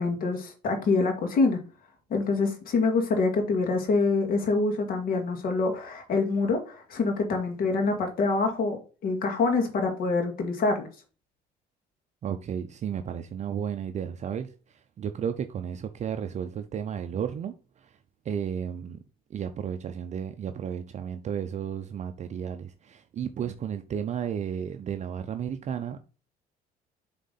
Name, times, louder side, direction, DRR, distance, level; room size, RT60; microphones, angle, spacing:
voice 1, 0.0-1.6 2.1-8.8 9.0-10.9, left 3 dB, 60° left, 2.1 m, -25 dB
voice 2, 12.2-14.5 15.0-17.5 18.3-19.0 19.3-26.0, right 8 dB, 45° right, 0.5 m, -33 dB
7.5 x 3.7 x 4.0 m
cardioid pair, 110°, 17 cm